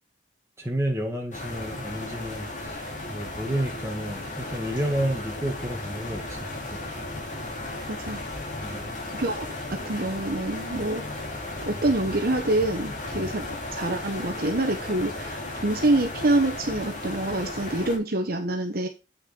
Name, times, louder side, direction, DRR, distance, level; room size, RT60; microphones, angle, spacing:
voice 1, 0.6-7.0 8.6-8.9, right 1 dB, 15° right, 2.0 m, -31 dB
sound 1, 1.3-18.0, left 2 dB, 40° left, 2.6 m, -35 dB
voice 2, 7.9-8.2 9.1-11.0 11.6-13.5 13.7-18.9, right 2 dB, 50° right, 1.0 m, -26 dB
8.8 x 6.4 x 4.5 m
head